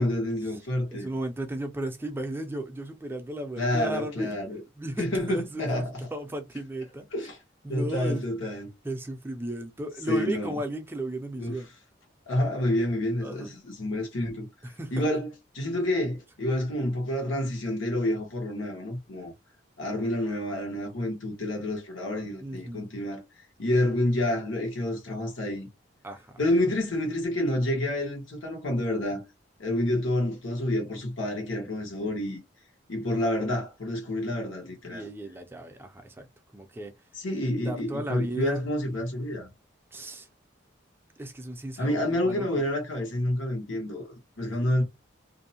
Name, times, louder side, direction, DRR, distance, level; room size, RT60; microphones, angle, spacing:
voice 1, 0.0-1.1 3.6-4.6 5.0-6.0 7.1-7.4 7.7-8.7 10.1-10.6 11.4-11.6 12.3-14.5 14.9-19.3 19.8-23.2 23.6-25.7 26.4-29.2 29.6-32.4 32.9-35.1 37.1-39.5 41.8-44.8, left 1 dB, 85° left, 1.1 m, -28 dB
voice 2, 0.9-4.4 4.8-7.1 7.6-8.2 8.8-11.7 13.2-13.5 14.6-15.1 22.4-22.9 26.0-26.4 34.9-36.3 36.5-36.9 37.6-38.6 39.9-40.3 41.2-42.6, right 1 dB, 10° right, 0.3 m, -35 dB
2.6 x 2.0 x 2.7 m
head